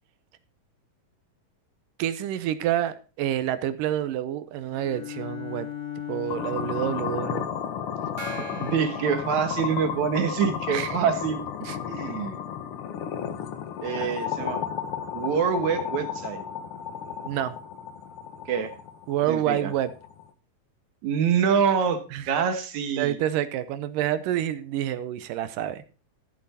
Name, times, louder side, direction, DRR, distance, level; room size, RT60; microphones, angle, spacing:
voice 1, 2.0-5.7 6.1-7.5 10.7-11.0 11.6-11.8 14.0-14.1 17.2-17.5 19.1-19.9 22.1-22.2 23.0-25.8, right 11 dB, 80° right, 13 dB, 2.4 m, -28 dB
Bowed string instrument, 4.7-7.8, left 10 dB, 35° left, 2.3 m, -37 dB
sound 1, 6.3-20.3, left 8 dB, 70° left, 1.3 m, -33 dB
Gong, 8.2-10.2, right 1 dB, 30° right, 2.8 m, -41 dB
voice 2, 8.4-11.4 11.9-12.4 13.8-14.6 15.1-16.4 18.5-18.7 19.3-19.7 21.0-23.2, right 7 dB, 65° right, 8 dB, 2.4 m, -26 dB
13.0 x 7.5 x 4.2 m, 0.35 s
omnidirectional pair, 3.9 m